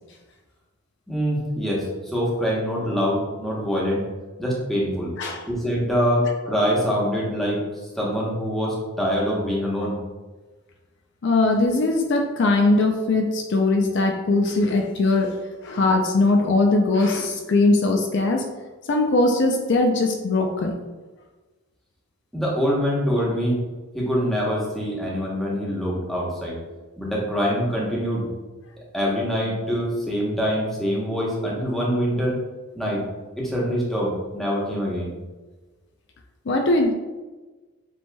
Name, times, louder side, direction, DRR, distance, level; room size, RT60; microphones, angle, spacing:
voice 1, 1.1-4.0 4.4-5.1 5.5-7.6 7.9-10.0 22.3-23.6 23.9-26.6 27.0-28.3 28.9-32.4 32.7-33.0 33.4-35.1, equal, ahead, -6 dB, 1.0 m, -24 dB
voice 2, 5.2-5.5 11.2-15.3 15.6-18.5 18.9-20.7 36.5-36.9, left 2 dB, 55° left, 3 dB, 0.4 m, -20 dB
7.3 x 2.8 x 2.3 m, 1.2 s
head